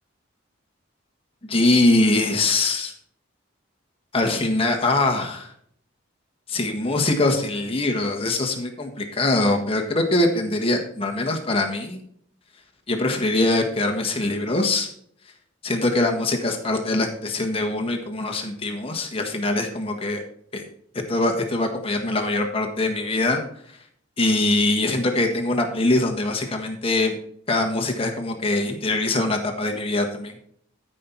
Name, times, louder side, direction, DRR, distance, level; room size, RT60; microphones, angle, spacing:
voice 1, 1.5-2.9 4.1-5.5 6.5-12.0 12.9-14.9 15.6-20.2 20.5-20.6 21.1-23.4 24.2-27.2 27.5-30.3, left 2 dB, 30° left, 3 dB, 1.6 m, -23 dB
13.0 x 5.6 x 4.6 m, 0.65 s
head